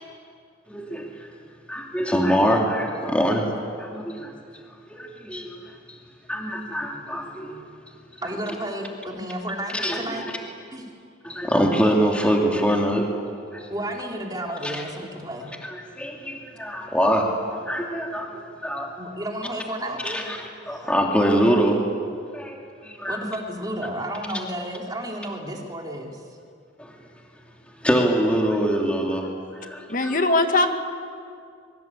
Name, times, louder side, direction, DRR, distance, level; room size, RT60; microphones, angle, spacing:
voice 1, 0.7-1.3 1.7-3.5 3.8-4.3 4.9-6.0 6.3-7.6 9.7-10.2 11.2-13.2 13.5-13.7 14.6-14.8 15.6-18.9 20.0-21.9 22.3-22.6 22.8-23.2 26.8-27.0 27.8-29.3 29.6-30.2, equal, 5° left, 0 dB, 2.6 m, -24 dB
voice 2, 8.2-10.2 10.7-10.8 13.7-15.5 19.0-20.3 20.7-20.8 23.1-26.2, right 1 dB, 20° right, 0 dB, 3.3 m, -32 dB
voice 3, 29.9-30.8, left 2 dB, 45° left, 6 dB, 2.0 m, -20 dB
24.5 x 24.0 x 8.5 m, 2.3 s
head